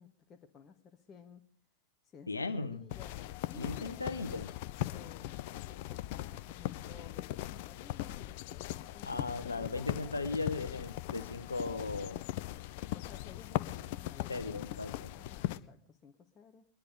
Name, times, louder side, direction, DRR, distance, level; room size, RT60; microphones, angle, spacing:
voice 1, 0.0-1.5 2.0-4.3 4.8-10.2 11.1-11.4 12.9-16.7, left 5 dB, 25° left, 4 dB, 1.3 m, -56 dB
voice 2, 2.3-2.8 3.5-4.5 9.0-12.2 14.3-15.1, left 3 dB, 80° left, 8 dB, 1.0 m, -37 dB
sound 1, 2.9-15.6, left 15 dB, 50° left, 0.6 m, -39 dB
23.0 x 10.5 x 5.1 m, 0.63 s
figure-of-eight pair, 90°, 0 cm